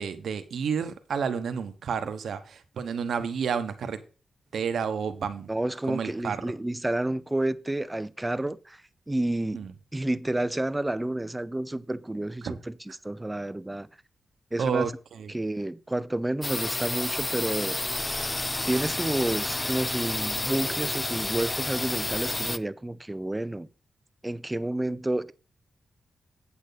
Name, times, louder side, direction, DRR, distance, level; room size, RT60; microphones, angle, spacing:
voice 1, 0.0-4.0 4.5-5.5 5.9-6.4 9.5-9.7 12.4-12.5 14.6-14.9 15.2-15.3, right 6 dB, 80° right, 1.1 m, -30 dB
voice 2, 5.5-8.8 9.1-9.6 9.9-13.9 14.5-14.9 15.3-17.8 18.6-23.7 24.2-25.3, right 1 dB, 20° right, 0.7 m, -30 dB
sound 1, 16.4-22.6, left 2 dB, 25° left, 0.5 m, -30 dB
8.4 x 8.1 x 4.1 m
cardioid pair, 55°, 0 cm